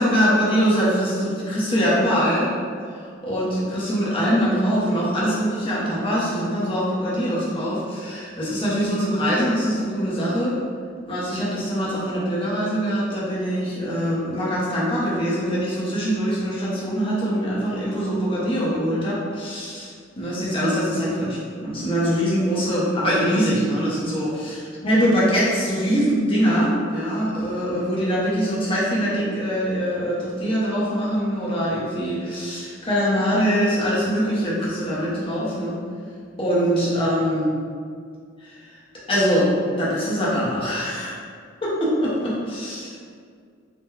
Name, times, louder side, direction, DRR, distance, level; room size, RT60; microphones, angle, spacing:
voice 1, 0.0-2.5 2.9-10.6 11.1-35.8 36.4-37.5 38.4-38.6 39.1-41.2 41.6-43.0, equal, 25° left, -7 dB, 0.7 m, -23 dB
2.9 x 2.1 x 3.6 m, 2.1 s
head